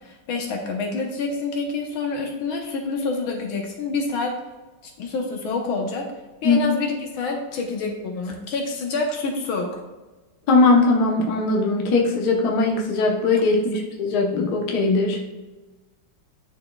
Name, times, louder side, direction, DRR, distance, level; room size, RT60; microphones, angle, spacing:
voice 1, 0.0-4.4 4.8-6.1 6.4-9.8, left 3 dB, 75° left, 1 dB, 1.7 m, -27 dB
voice 2, 10.5-15.2, left 3 dB, 55° left, 0 dB, 1.4 m, -20 dB
11.0 x 4.2 x 2.3 m, 1.2 s
omnidirectional pair, 2.3 m